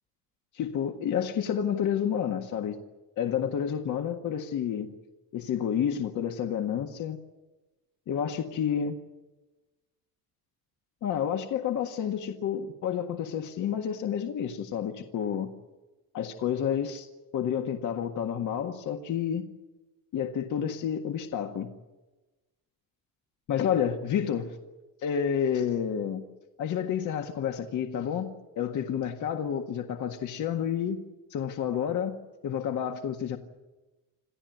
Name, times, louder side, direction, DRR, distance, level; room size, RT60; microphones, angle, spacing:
voice 1, 0.5-2.8 3.2-4.9 5.3-7.2 8.1-8.9 11.0-15.5 16.1-17.1 17.3-19.5 20.1-21.7 23.5-24.5 25.0-26.2 26.6-28.3 28.6-31.0 31.3-32.2 32.4-33.4, left 8 dB, 55° left, 5 dB, 1.7 m, -29 dB
27.5 x 15.0 x 9.3 m, 1.1 s
cardioid pair, 140°, 36 cm